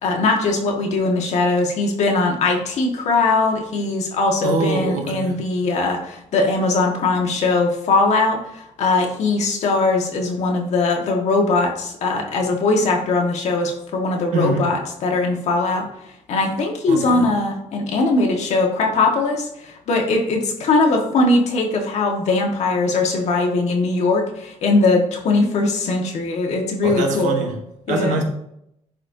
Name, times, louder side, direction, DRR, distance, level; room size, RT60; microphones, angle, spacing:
voice 1, 0.0-15.9 16.3-27.5 27.9-28.2, left 3 dB, 65° left, 1.6 m, -20 dB
voice 2, 4.4-5.5 14.3-14.8 16.9-17.4 26.8-28.2, right 3 dB, 85° right, 1.4 m, -24 dB
11.0 x 4.4 x 2.7 m
cardioid pair, 135°, 12 cm